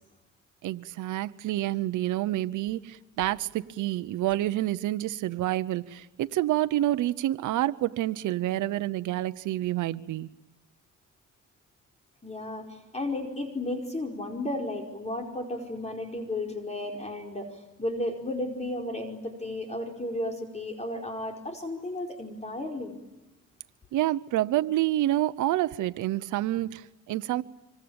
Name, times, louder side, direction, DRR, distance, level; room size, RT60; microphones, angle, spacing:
voice 1, 0.6-10.3 23.9-27.4, right 14 dB, 80° right, 0.9 m, -28 dB
voice 2, 12.2-23.0, left 1 dB, 20° left, 4.8 m, -34 dB
25.5 x 25.0 x 8.8 m
cardioid pair, 90°, 30 cm